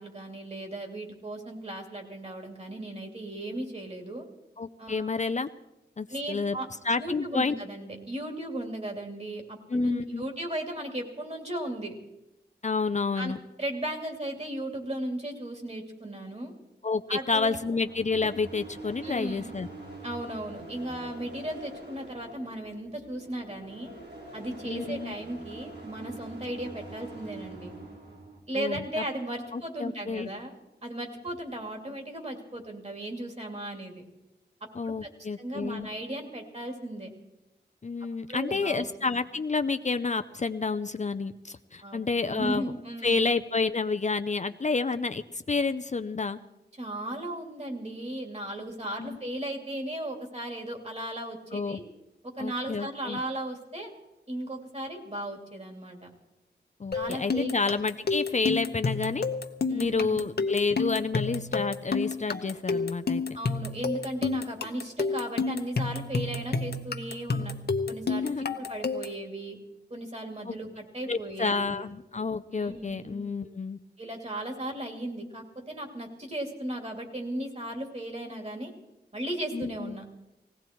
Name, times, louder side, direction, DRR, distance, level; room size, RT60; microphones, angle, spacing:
voice 1, 0.0-4.2 4.8-5.1 6.1-6.7 7.0-11.9 13.1-13.3 13.6-16.5 17.1-17.6 19.0-19.5 20.0-23.9 24.3-27.7 28.5-30.5 30.8-34.0 34.8-35.1 35.4-37.1 38.3-38.9 41.8-43.2 46.8-51.8 52.2-53.9 54.3-56.1 56.9-57.5 59.7-60.3 63.3-67.5 67.9-69.6 69.9-71.8 72.5-73.0 74.0-78.7 79.1-80.0, right 1 dB, 35° right, 3 dB, 2.9 m, -36 dB
voice 2, 4.6-5.5 6.0-6.6 6.8-7.5 9.7-10.3 12.6-13.4 16.8-19.7 24.6-25.1 28.6-29.0 29.5-30.3 34.8-35.9 37.8-42.7 43.0-46.4 49.0-49.2 51.5-51.8 52.4-53.2 56.8-59.3 59.8-63.2 68.2-68.5 70.5-70.6 71.1-73.8 79.5-80.0, left 4 dB, 40° left, 9 dB, 0.5 m, -29 dB
sound 1, 17.3-28.4, right 2 dB, 70° right, 4.2 m, -45 dB
sound 2, 56.9-69.2, left 4 dB, 60° left, 0.9 m, -30 dB
19.0 x 16.5 x 4.6 m, 0.96 s
wide cardioid pair, 90°, 18 cm